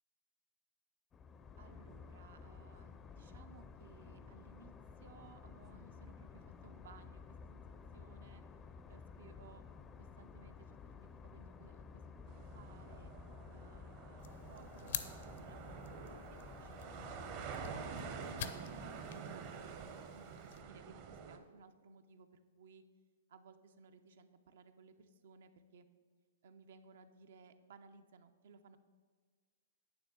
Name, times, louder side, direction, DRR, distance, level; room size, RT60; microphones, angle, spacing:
sound 1, 1.1-18.5, left 5 dB, 20° left, 0.4 m, -53 dB
voice 1, 1.6-4.7 5.0-7.6 7.9-8.4 8.9-9.6 10.0-11.0 11.2-12.0 12.3-13.1 13.5-19.7 20.1-22.3 22.6-22.8 23.3-25.9 26.4-28.8, right 5 dB, 70° right, 9 dB, 0.6 m, -61 dB
sound 2, 12.3-21.4, right 6 dB, 45° right, 0.8 m, -48 dB
sound 3, 14.2-20.6, left 10 dB, 65° left, 0.6 m, -49 dB
9.2 x 3.7 x 6.7 m, 1.5 s
hypercardioid pair, 135°, 0 cm